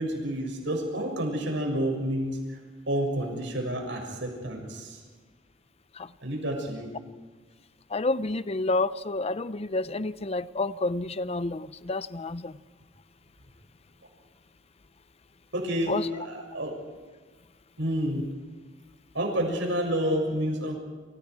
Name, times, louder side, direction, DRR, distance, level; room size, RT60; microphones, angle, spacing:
voice 1, 0.0-2.4 2.9-5.0 6.2-6.9 15.5-16.8 17.8-18.2 19.1-20.8, right 1 dB, 75° right, 1 dB, 7.2 m, -29 dB
voice 2, 7.9-12.6 15.9-16.1, left 2 dB, 35° left, 15 dB, 0.6 m, -29 dB
28.5 x 27.5 x 4.8 m, 1.5 s
head